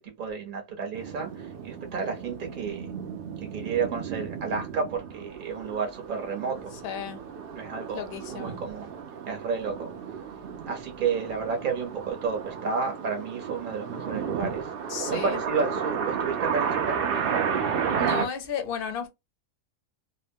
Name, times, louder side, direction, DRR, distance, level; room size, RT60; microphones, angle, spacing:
voice 1, 0.0-2.9 3.4-6.7 7.5-8.0 8.3-8.9 9.3-9.9 10.6-14.7 15.1-17.4, right 5 dB, 40° right, 0.9 m, -31 dB
sound 1, 0.9-18.3, right 7 dB, 60° right, 0.6 m, -33 dB
voice 2, 6.8-7.2 7.9-8.6 14.9-15.4 17.9-19.1, left 8 dB, 55° left, 0.6 m, -33 dB
2.8 x 2.1 x 2.6 m
omnidirectional pair, 1.5 m